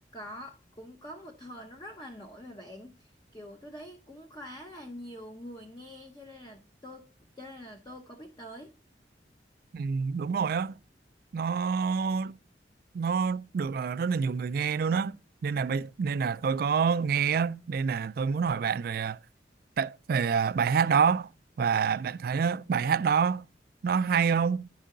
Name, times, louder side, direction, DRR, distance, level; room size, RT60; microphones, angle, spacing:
voice 1, 0.1-8.7, equal, 25° left, 0.8 m, -45 dB
voice 2, 9.7-10.7 11.3-12.3 12.9-15.1 15.4-19.2 19.8-21.3 21.6-23.5 23.8-24.6, right 6 dB, 55° right, 0.3 m, -27 dB
10.0 x 5.5 x 3.8 m
head